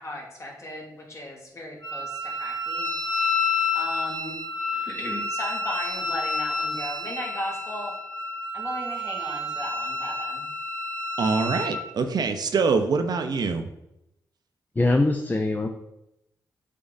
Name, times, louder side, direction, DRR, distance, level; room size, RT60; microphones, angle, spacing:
voice 1, 0.0-2.9 3.7-4.4 4.7-7.9 8.5-10.5, left 1 dB, 40° left, -2 dB, 2.2 m, -36 dB
Wind instrument woodwind instrument, 1.8-11.8, left 2 dB, 80° left, 2.2 m, -29 dB
voice 2, 11.2-13.7, right 4 dB, 65° right, 7 dB, 0.7 m, -24 dB
voice 3, 14.8-15.7, left 2 dB, 25° left, 4 dB, 0.7 m, -22 dB
7.4 x 3.8 x 4.1 m, 0.85 s
cardioid pair, 60°, 7 cm